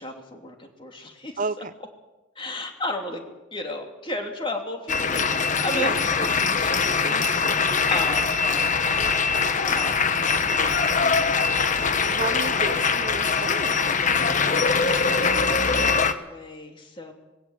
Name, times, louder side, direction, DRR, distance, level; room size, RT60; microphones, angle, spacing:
voice 1, 0.0-1.7 2.3-3.2 3.5-8.6 9.4-11.9 14.4-17.1, left 1 dB, 25° left, 3.0 m, -35 dB
voice 2, 1.4-1.7 5.7-6.0 12.1-13.9, right 4 dB, 45° right, 0.6 m, -31 dB
sound 1, 4.9-16.1, left 5 dB, 45° left, 1.1 m, -22 dB
20.5 x 17.0 x 8.2 m
head